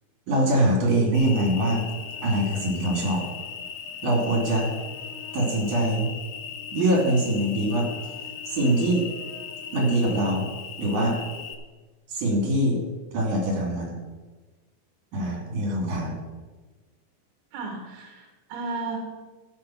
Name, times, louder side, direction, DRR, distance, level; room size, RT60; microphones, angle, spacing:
voice 1, 0.3-1.9 2.2-3.2 4.0-4.7 5.3-6.1 6.7-7.9 8.5-9.1 9.7-10.5 10.8-11.2 12.1-12.8 13.1-14.0 15.1-16.2, right 1 dB, 55° right, 0 dB, 4.2 m, -23 dB
Cricket, 1.1-11.5, left 7 dB, 80° left, 1.6 m, -38 dB
voice 2, 17.5-19.0, right 4 dB, 85° right, 2 dB, 3.2 m, -34 dB
12.5 x 8.0 x 5.9 m, 1.3 s
omnidirectional pair, 4.3 m